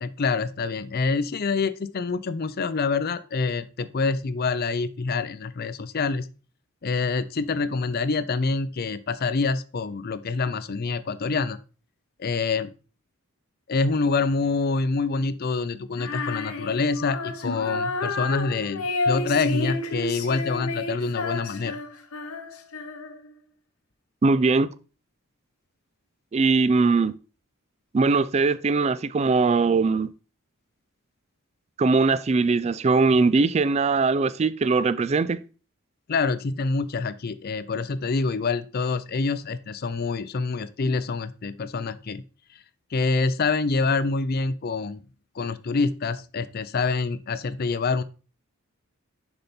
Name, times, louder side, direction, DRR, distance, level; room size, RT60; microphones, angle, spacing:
voice 1, 0.0-6.3 6.8-11.6 12.2-12.7 13.7-21.8 36.1-42.2 42.9-45.0 45.4-48.0, left 4 dB, 45° left, 0.5 m, -26 dB
Female singing, 16.0-23.3, left 3 dB, 75° left, 1.0 m, -30 dB
voice 2, 24.2-24.7 26.3-27.1 27.9-30.1 31.8-35.4, right 4 dB, 30° right, 0.3 m, -21 dB
6.6 x 5.6 x 4.3 m
head